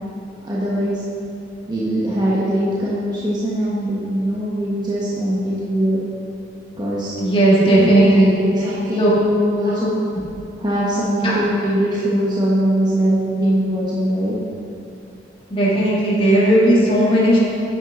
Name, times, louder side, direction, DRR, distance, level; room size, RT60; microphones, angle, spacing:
voice 1, 0.4-1.0 1.7-6.0 6.8-7.1 7.8-8.0 8.4-10.0 10.6-14.3, right 1 dB, 25° right, -7 dB, 1.1 m, -21 dB
voice 2, 7.2-8.3 9.0-9.1 10.1-10.2 11.2-11.3 15.5-17.4, right 1 dB, 30° left, -7 dB, 2.0 m, -15 dB
9.9 x 9.0 x 3.8 m, 2.7 s
head